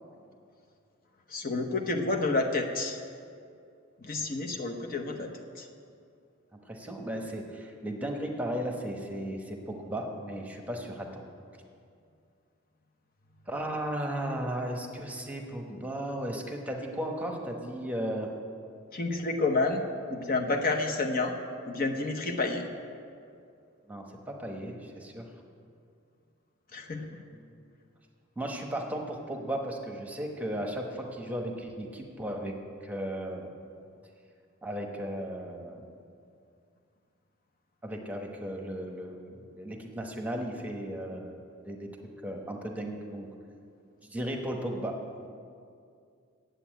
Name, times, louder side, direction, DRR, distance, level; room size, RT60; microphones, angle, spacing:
voice 1, 1.3-3.0 4.0-5.7 18.9-19.8 20.1-21.3 21.6-22.6 26.7-27.2, left 3 dB, 45° left, 3 dB, 0.8 m, -29 dB
voice 2, 6.7-11.2 13.5-18.3 23.9-25.3 27.3-27.6 28.4-32.5 32.8-33.5 34.6-35.9 37.8-41.9 42.2-43.3 44.0-44.9, right 1 dB, 5° right, 2 dB, 1.0 m, -35 dB
8.4 x 7.9 x 9.1 m, 2.4 s
head